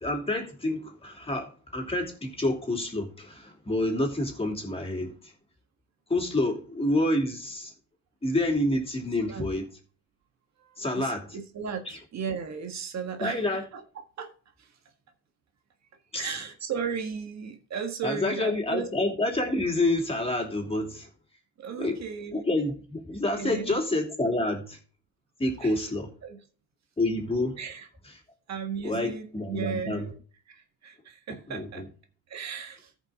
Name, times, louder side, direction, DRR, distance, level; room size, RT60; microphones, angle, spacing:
voice 1, 0.0-5.3 6.1-7.7 8.2-9.6 10.8-11.3 11.9-12.0 13.2-13.6 16.1-16.3 18.0-21.1 21.8-22.0 22.3-24.8 25.4-26.1 27.0-27.6 28.8-30.1 31.5-31.8, left 1 dB, 20° left, 3.0 m, -28 dB
voice 2, 10.6-14.3 14.6-14.8 16.1-18.9 21.6-22.4 23.3-23.8 25.6-25.8 26.2-26.4 27.6-27.9 28.5-30.2 30.5-31.9 32.3-32.9, right 6 dB, 60° right, 1.6 m, -36 dB
14.0 x 5.4 x 3.7 m
cardioid pair, 90°, 30 cm